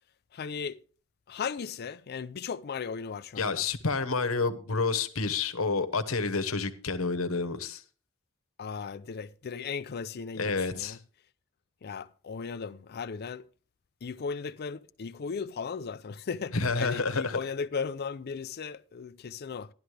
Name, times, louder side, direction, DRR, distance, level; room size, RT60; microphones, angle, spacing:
voice 1, 0.3-0.8 1.3-3.6 8.6-11.0 11.8-13.5 14.0-19.7, left 5 dB, 50° left, 0.5 m, -36 dB
voice 2, 3.4-7.8 10.4-11.0 16.5-17.4, left 4 dB, 80° left, 1.2 m, -29 dB
13.0 x 11.5 x 3.3 m
head